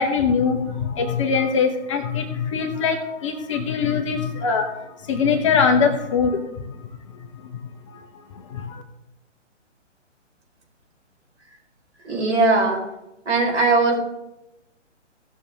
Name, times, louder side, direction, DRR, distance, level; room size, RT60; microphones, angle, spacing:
voice 1, 0.0-4.7 5.1-6.4 7.5-7.6 8.5-8.8, left 5 dB, 25° left, 5 dB, 0.9 m, -22 dB
voice 2, 12.0-12.8 13.3-14.0, right 3 dB, 65° right, 0 dB, 4.6 m, -19 dB
17.0 x 6.6 x 3.6 m, 0.90 s
figure-of-eight pair, 135°, 37 cm